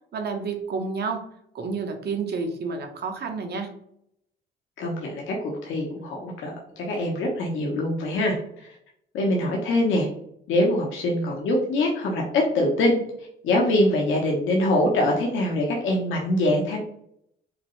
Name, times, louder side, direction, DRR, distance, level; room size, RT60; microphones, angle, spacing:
voice 1, 0.1-1.3 1.5-3.7, right 4 dB, 55° right, 5 dB, 0.8 m, -30 dB
voice 2, 4.8-8.7 9.1-10.1 10.5-13.0 13.4-16.8, left 1 dB, 85° left, -1 dB, 0.8 m, -24 dB
4.9 x 2.1 x 3.0 m, 0.72 s
cardioid pair, 90°, 20 cm